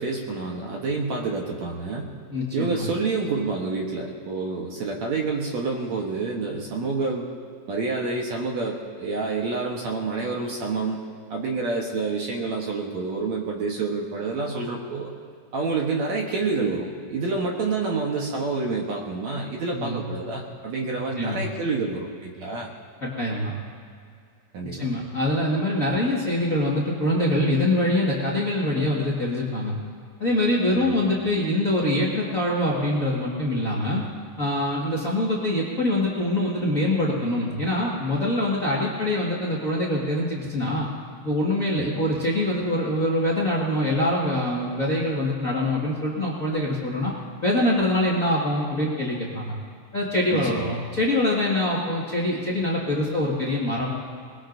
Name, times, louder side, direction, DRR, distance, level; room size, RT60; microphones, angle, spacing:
voice 1, 0.0-2.1 2.5-7.3 7.7-11.0 11.3-15.1 15.5-22.7 24.5-24.9 30.8-31.0 41.8-42.0 50.3-50.7, right 3 dB, 60° right, -1 dB, 2.1 m, -28 dB
voice 2, 2.3-2.8 19.7-20.0 21.2-21.4 23.0-23.5 24.8-29.7 30.2-34.0 34.4-40.9 41.2-47.1 47.4-49.5 49.9-53.9, left 1 dB, 35° left, -5 dB, 1.5 m, -24 dB
23.0 x 21.0 x 2.7 m, 2.3 s
omnidirectional pair, 4.1 m